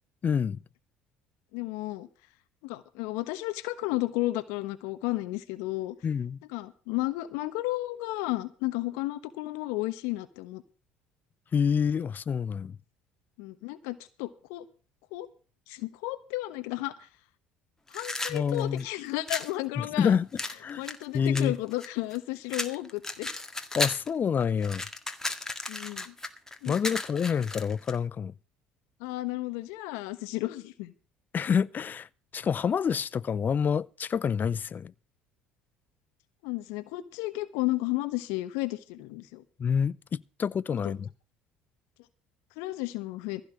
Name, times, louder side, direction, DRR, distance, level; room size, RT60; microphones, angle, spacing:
voice 1, 0.2-0.6 6.0-6.4 11.5-12.8 18.3-18.8 19.8-20.3 20.6-20.8 21.1-21.5 23.7-24.8 26.7-28.3 31.3-32.1 32.3-34.9 39.6-41.1, left 7 dB, 35° left, 0.5 m, -27 dB
voice 2, 1.5-2.1 2.6-5.9 6.5-10.6 13.4-14.6 15.1-15.3 15.7-17.1 17.9-20.2 20.8-23.3 25.7-26.1 26.6-27.0 29.0-30.9 36.4-39.4 40.8-40.9 42.6-43.4, left 18 dB, 75° left, 1.1 m, -33 dB
sound 1, 17.9-19.5 20.4-22.2 22.5-24.1 24.4-28.0, left 2 dB, 10° left, 1.9 m, -34 dB
15.5 x 5.7 x 8.9 m
hypercardioid pair, 65°, 5 cm